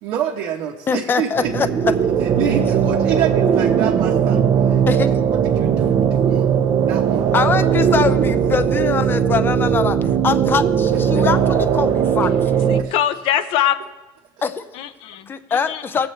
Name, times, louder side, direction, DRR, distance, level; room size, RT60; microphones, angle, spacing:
voice 1, 0.0-1.7 2.2-4.4 4.7-6.5 6.9-8.2 12.8-12.9, right 9 dB, 75° right, -2 dB, 1.1 m, -28 dB
voice 2, 0.9-1.9 4.9-5.1 7.3-12.7 14.4-14.7 15.3-16.1, left 5 dB, 25° left, 12 dB, 0.5 m, -22 dB
sound 1, 1.3-12.8, right 8 dB, 45° right, 0.8 m, -18 dB
voice 3, 12.7-13.8 14.7-15.8, left 11 dB, 65° left, 11 dB, 0.7 m, -22 dB
19.5 x 7.9 x 3.3 m, 1.1 s
cardioid pair, 145°, 9 cm